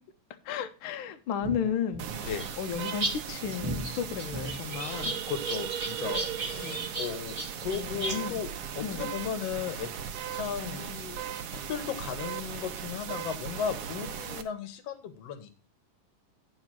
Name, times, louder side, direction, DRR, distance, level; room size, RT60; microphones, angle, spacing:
voice 1, 0.4-5.2 6.6-6.9 7.7-8.4 8.8-9.1 10.6-10.8, left 8 dB, 90° left, 1.1 m, -34 dB
sound 1, 1.4-3.1 3.4-8.2, right 2 dB, 25° right, 0.7 m, -35 dB
sound 2, 2.0-14.4, right 8 dB, 70° right, 1.6 m, -38 dB
sound 3, 4.2-8.5, right 11 dB, 85° right, 1.2 m, -39 dB
voice 2, 5.3-8.5 8.8-9.9 10.3-11.2 11.5-15.5, left 7 dB, 65° left, 1.9 m, -36 dB
9.6 x 4.8 x 5.9 m
omnidirectional pair, 3.3 m